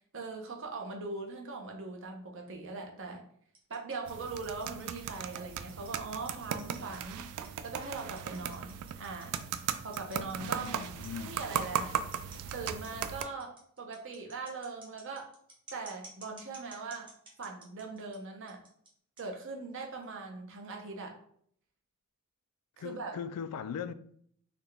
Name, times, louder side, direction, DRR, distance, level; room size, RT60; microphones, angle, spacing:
voice 1, 0.1-3.2 3.7-9.4 9.8-10.9 11.2-11.9 12.5-15.3 15.7-17.1 17.4-18.6 19.2-21.1 22.8-23.1, right 3 dB, 60° right, 0.7 m, -41 dB
sound 1, 3.5-18.2 18.5-18.9 19.2-19.3 20.0-20.1, right 2 dB, 20° right, 0.9 m, -53 dB
sound 2, 4.1-13.2, right 8 dB, 85° right, 0.3 m, -37 dB
voice 2, 10.4-11.4 22.8-23.9, left 7 dB, 90° left, 0.3 m, -39 dB
4.1 x 2.2 x 3.3 m
head